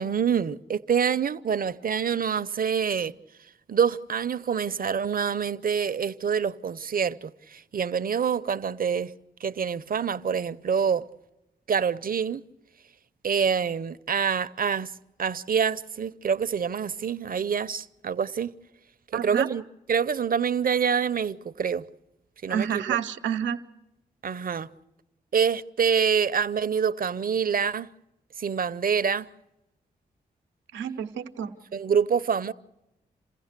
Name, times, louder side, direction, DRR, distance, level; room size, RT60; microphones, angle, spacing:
voice 1, 0.0-3.1 3.7-9.1 9.4-11.0 11.7-12.4 13.2-14.9 15.2-18.5 19.1-19.6 19.9-21.8 22.4-23.0 24.2-24.7 25.3-27.9 28.4-29.3 31.7-32.5, right 7 dB, 50° right, 0.7 m, -26 dB
voice 2, 19.1-19.5 22.5-23.6 30.7-31.5, right 8 dB, 90° right, 0.8 m, -29 dB
28.0 x 16.0 x 6.7 m
supercardioid pair, 45°, 19 cm